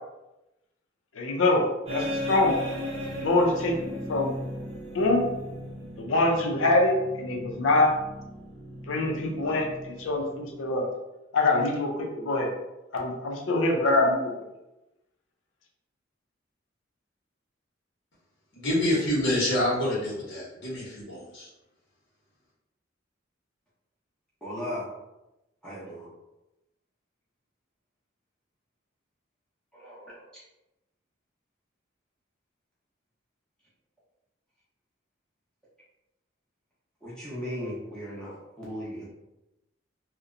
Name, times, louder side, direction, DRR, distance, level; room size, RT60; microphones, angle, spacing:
voice 1, 1.2-1.6 1.9-2.6 3.2-4.3 4.9-5.2 6.0-7.9 8.9-10.9 11.3-12.5 12.9-14.3, left 2 dB, 85° left, 1 dB, 0.5 m, -24 dB
sound 1, 1.9-10.8, equal, 30° right, 0.6 m, -37 dB
voice 2, 18.5-21.5, left 1 dB, 60° left, -6 dB, 0.9 m, -27 dB
voice 3, 24.4-24.9 25.6-26.1 29.8-30.1 37.0-39.1, equal, 5° left, -10 dB, 0.7 m, -36 dB
2.7 x 2.1 x 2.4 m, 0.95 s
head